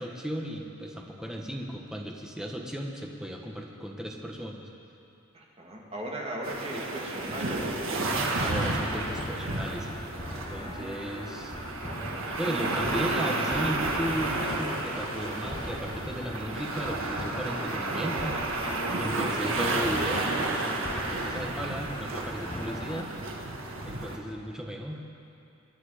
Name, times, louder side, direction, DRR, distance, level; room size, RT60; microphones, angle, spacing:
voice 1, 0.0-4.6 8.4-11.5 12.4-18.4 19.0-23.1 23.8-25.0, equal, 5° right, 0 dB, 1.2 m, -36 dB
voice 2, 5.3-8.3 10.4-11.2, right 1 dB, 30° right, -2 dB, 2.3 m, -39 dB
sound 1, 6.4-24.2, right 2 dB, 75° right, 1.6 m, -31 dB
sound 2, 8.9-23.0, left 2 dB, 20° left, 0.7 m, -41 dB
24.0 x 11.0 x 5.1 m, 2.7 s
head